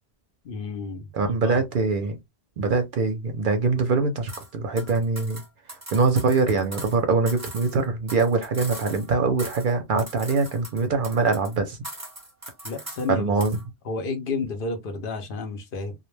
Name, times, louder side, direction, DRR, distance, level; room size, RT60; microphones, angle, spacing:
voice 1, 0.4-1.6 12.6-13.3 13.9-15.9, left 3 dB, 60° left, 0.7 m, -31 dB
voice 2, 1.1-2.2 2.6-5.4 5.9-11.8 13.1-13.6, right 4 dB, 60° right, 0.6 m, -23 dB
sound 1, 4.3-4.5 4.8-7.0 7.3-9.1 9.4-9.7 10.0-11.6 11.8-13.1 13.4-13.6, right 1 dB, 15° right, 0.8 m, -40 dB
2.2 x 2.1 x 3.0 m
omnidirectional pair, 1.1 m